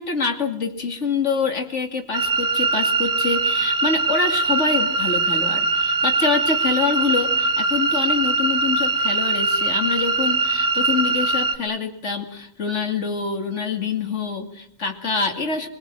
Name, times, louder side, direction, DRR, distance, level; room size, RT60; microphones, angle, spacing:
voice 1, 0.0-15.7, left 4 dB, 35° left, 6 dB, 2.8 m, -25 dB
sound 1, 2.1-11.6, right 3 dB, 30° right, 1.0 m, -21 dB
25.0 x 23.0 x 7.6 m, 0.65 s
omnidirectional pair, 2.2 m